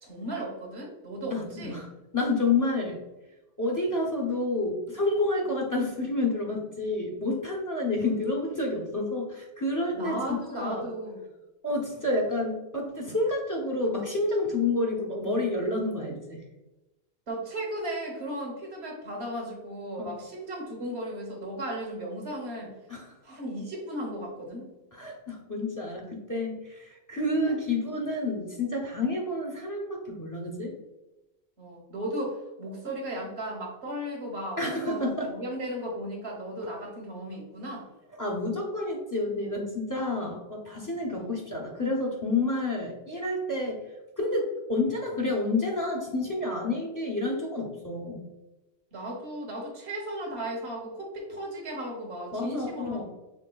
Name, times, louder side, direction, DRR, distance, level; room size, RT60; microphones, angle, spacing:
voice 1, 0.0-1.8 9.9-11.3 17.3-22.7 23.2-24.7 27.5-27.6 31.6-37.9 41.1-41.4 43.6-43.7 48.9-53.0, right 1 dB, 85° right, -1 dB, 1.4 m, -36 dB
voice 2, 1.3-1.9 2.1-3.0 3.6-10.9 11.6-16.4 20.0-20.1 22.9-23.2 24.9-30.7 34.6-35.3 38.2-43.8 44.2-48.3 52.3-53.0, left 2 dB, 20° left, -1 dB, 0.7 m, -29 dB
6.0 x 3.6 x 2.3 m, 1.0 s
omnidirectional pair, 1.1 m